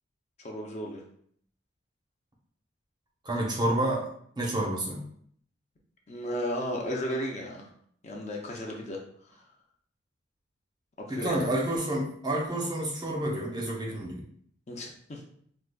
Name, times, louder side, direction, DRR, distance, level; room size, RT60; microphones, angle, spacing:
voice 1, 0.4-1.0 6.1-7.7 8.0-9.0 9.3-9.4 11.0-11.5 14.7-15.2, equal, 35° left, 0 dB, 0.5 m, -34 dB
voice 2, 3.2-5.0 11.1-14.3, right 1 dB, 20° right, -1 dB, 0.6 m, -29 dB
4.7 x 2.4 x 2.2 m, 0.62 s
head